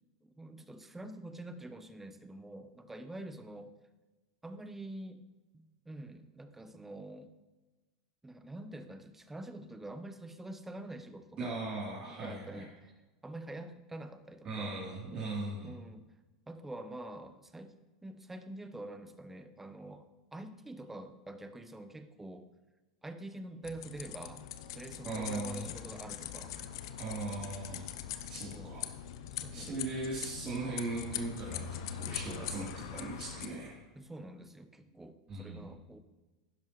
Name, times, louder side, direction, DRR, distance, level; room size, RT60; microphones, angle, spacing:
voice 1, 0.2-3.7 4.4-5.2 5.5-7.3 8.2-11.5 12.0-12.7 13.2-14.8 15.6-16.1 16.5-17.7 18.0-22.5 23.0-26.6 28.5-28.8 29.3-29.8 33.9-36.0, right 1 dB, 10° right, 9 dB, 0.9 m, -46 dB
voice 2, 11.4-12.6 14.4-15.8 25.0-25.7 27.0-27.9 28.3-28.8 29.5-33.8 35.3-35.7, right 2 dB, 35° right, -6 dB, 3.3 m, -39 dB
sound 1, 23.6-33.5, left 10 dB, 65° left, 0.7 m, -42 dB
11.5 x 10.5 x 3.1 m, 1.2 s
hypercardioid pair, 90°, 3 cm